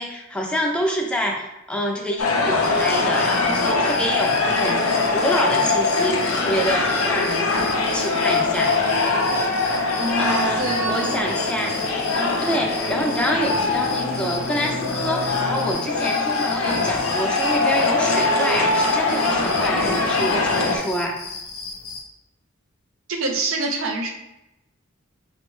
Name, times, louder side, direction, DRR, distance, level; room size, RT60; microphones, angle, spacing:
voice 1, 0.0-4.8 5.1-8.8 9.9-11.8 12.1-21.2, equal, 5° left, 0 dB, 0.5 m, -27 dB
sound 1, 2.2-20.8, left 3 dB, 90° left, 0.6 m, -22 dB
sound 2, 2.6-22.0, left 4 dB, 50° left, 0.7 m, -35 dB
sound 3, 4.8-15.7, equal, 30° right, 0.7 m, -36 dB
voice 2, 10.0-11.2 23.1-24.1, right 2 dB, 70° right, 2 dB, 0.6 m, -26 dB
5.1 x 2.1 x 3.1 m, 0.91 s
head